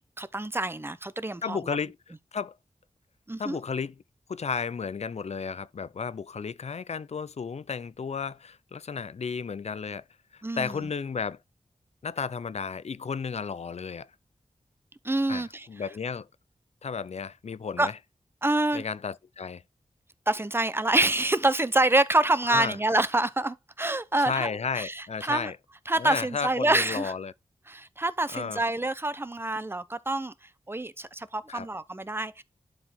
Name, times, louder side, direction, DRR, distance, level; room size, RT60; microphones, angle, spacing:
voice 1, 0.2-1.6 3.3-3.6 10.4-10.8 15.0-15.7 17.8-17.9 18.4-18.8 20.3-24.5 24.8-25.5 25.9-27.1 27.7-30.3 30.7-32.4, right 2 dB, 20° right, 0.8 m, -26 dB
voice 2, 1.4-2.6 3.4-3.9 4.3-10.0 10.3-11.4 12.0-14.1 15.3-16.3 16.8-18.0 18.7-19.6 22.5-22.8 24.2-25.6 26.0-27.3 28.3-28.6 31.5-31.7, left 5 dB, 65° left, 0.6 m, -33 dB
11.5 x 4.9 x 3.6 m
wide cardioid pair, 105°, 12 cm